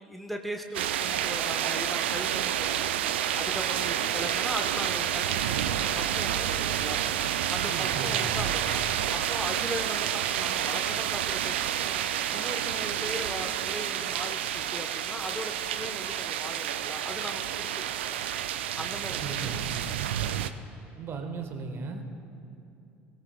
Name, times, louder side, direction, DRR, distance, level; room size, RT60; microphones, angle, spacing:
voice 1, 0.0-3.0 3.4-18.2 18.7-19.5, equal, ahead, 4 dB, 1.1 m, -39 dB
sound 1, 0.7-20.5, right 10 dB, 70° right, 0.5 m, -29 dB
voice 2, 7.6-8.4 19.2-19.6 21.0-22.0, right 4 dB, 40° right, 5 dB, 1.5 m, -36 dB
22.5 x 17.0 x 2.3 m, 2.7 s
figure-of-eight pair, 60°, 6 cm